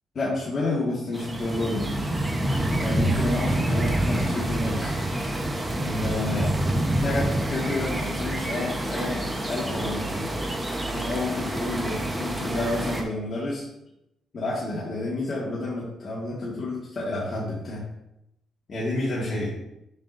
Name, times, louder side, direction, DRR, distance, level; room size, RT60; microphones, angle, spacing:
voice 1, 0.1-2.1 2.8-4.9 5.8-6.5 7.0-10.3 10.9-13.7 14.3-17.9 18.7-19.5, left 2 dB, 45° left, -7 dB, 2.0 m, -30 dB
sound 1, 1.1-13.0, right 1 dB, 15° right, 1.1 m, -27 dB
7.4 x 5.8 x 2.7 m, 0.83 s
cardioid pair, 90°, 0 cm